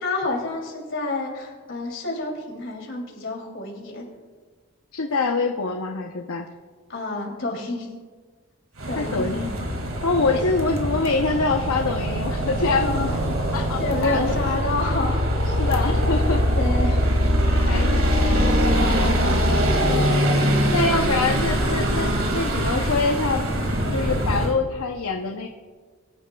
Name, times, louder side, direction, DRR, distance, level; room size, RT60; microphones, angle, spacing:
voice 1, 0.0-4.1 6.9-7.9 8.9-9.7 10.3-10.4 12.8-13.1 13.8-15.2 16.1-16.2 16.5-17.0, left 2 dB, 60° left, -1 dB, 2.8 m, -29 dB
voice 2, 4.9-6.5 8.9-9.5 10.0-13.0 13.5-14.3 15.6-16.4 16.9-17.0 17.7-19.1 19.8-23.4 23.9-25.5, left 3 dB, 80° left, 2 dB, 0.7 m, -25 dB
sound 1, 8.8-24.5, equal, 70° right, 2.0 m, -22 dB
22.0 x 9.9 x 2.3 m, 1.5 s
head